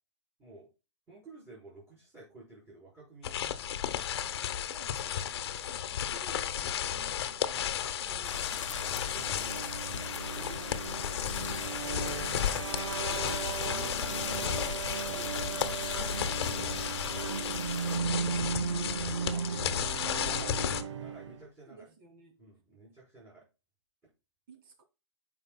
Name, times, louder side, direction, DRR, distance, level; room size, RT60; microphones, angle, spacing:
voice 1, 1.1-3.8 7.0-7.2 9.0-9.7 10.3-12.9 14.8-15.6 20.2-20.6 21.0-21.9 22.4-23.5, right 3 dB, 15° right, 4.5 m, -53 dB
sound 1, 3.2-20.8, left 10 dB, 55° left, 1.0 m, -34 dB
voice 2, 4.7-8.5 11.4-12.0 13.6-14.8 16.3-17.0 17.5-20.6 21.6-22.4 24.5-24.8, right 3 dB, 45° right, 2.5 m, -53 dB
sound 2, 8.2-18.0, left 7 dB, 80° left, 0.7 m, -41 dB
sound 3, 8.5-21.5, right 6 dB, 75° right, 1.2 m, -37 dB
12.0 x 5.2 x 2.3 m
hypercardioid pair, 140°, 16 cm